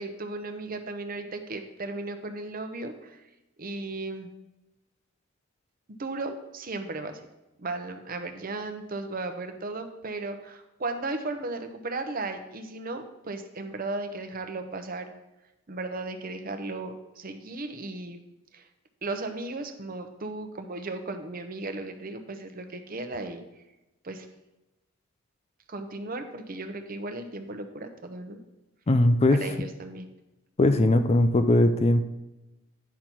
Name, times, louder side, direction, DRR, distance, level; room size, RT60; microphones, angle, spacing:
voice 1, 0.0-3.2 3.6-4.3 6.0-7.2 7.6-15.1 15.7-18.2 18.5-18.6 19.0-23.4 24.0-24.3 25.7-28.4 29.3-30.1, right 2 dB, 40° right, 7 dB, 0.8 m, -35 dB
voice 2, 28.9-29.4 30.6-32.0, left 1 dB, 30° left, 9 dB, 0.4 m, -20 dB
10.5 x 5.6 x 4.5 m, 0.97 s
head